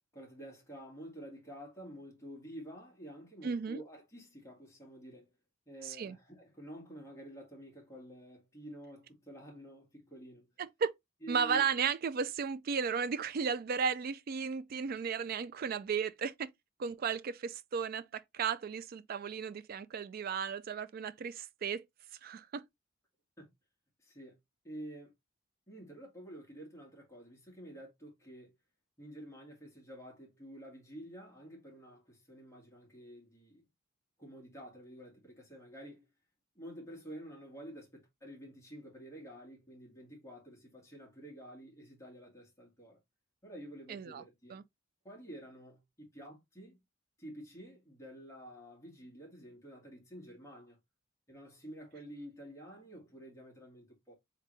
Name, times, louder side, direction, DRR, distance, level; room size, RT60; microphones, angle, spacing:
voice 1, 0.1-5.3 5.7-10.5 11.2-11.7 23.4-23.5 24.0-24.4 24.6-25.1 25.7-28.5 29.0-33.7 34.2-36.1 36.6-43.0 43.4-44.6 45.0-46.8 47.2-50.8 51.3-54.1, right 1 dB, 15° left, 1.7 m, -50 dB
voice 2, 3.4-3.8 5.8-6.2 10.6-10.9 11.3-16.5 16.8-21.8 22.2-22.6 43.9-44.2 44.5-44.6, right 6 dB, 45° right, 0.3 m, -34 dB
3.8 x 3.4 x 3.1 m
head